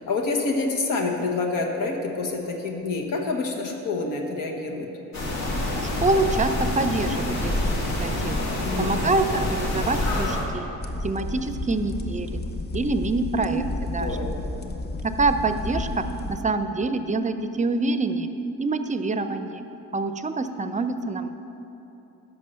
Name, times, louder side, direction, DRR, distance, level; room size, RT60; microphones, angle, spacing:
voice 1, 0.0-4.9 8.6-9.1 13.5-13.6 13.9-14.4, left 3 dB, 75° left, 2 dB, 1.3 m, -27 dB
sound 1, 5.1-10.5, left 1 dB, 55° left, 2.1 m, -26 dB
voice 2, 6.0-8.4 8.8-10.7 11.0-12.3 12.7-14.1 15.0-18.3 18.6-19.6 19.9-21.3, right 3 dB, 25° right, 10 dB, 0.5 m, -26 dB
sound 2, 10.8-16.4, left 2 dB, 30° left, 0.7 m, -32 dB
11.0 x 5.7 x 6.8 m, 3.0 s
cardioid pair, 90°, 33 cm